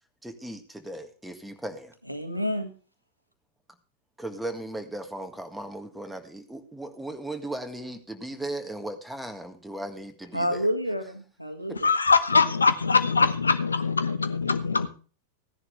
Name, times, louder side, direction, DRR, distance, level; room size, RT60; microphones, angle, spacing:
voice 1, 0.2-1.9 4.2-10.7, right 1 dB, 5° right, 6 dB, 1.8 m, -37 dB
voice 2, 2.1-2.7 10.3-11.9, equal, 90° right, 7 dB, 1.7 m, -29 dB
voice 3, 11.8-14.9, left 4 dB, 75° left, 12 dB, 1.1 m, -22 dB
16.0 x 11.0 x 3.3 m, 0.38 s
figure-of-eight pair, 90°, 0 cm